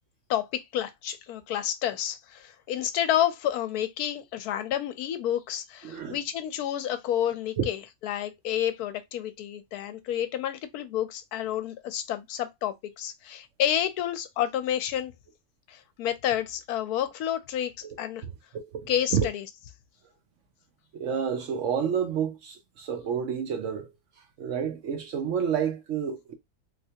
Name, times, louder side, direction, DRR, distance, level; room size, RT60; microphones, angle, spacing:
voice 1, 0.3-15.1 15.7-17.7 18.0-18.2 18.9-19.5, left 11 dB, 80° left, 1.1 m, -30 dB
voice 2, 5.8-6.2 7.6-7.7 17.8-17.9 18.7-19.3 20.9-23.9 24.4-26.3, right 7 dB, 65° right, 0.8 m, -29 dB
3.2 x 2.9 x 2.7 m
omnidirectional pair, 1.6 m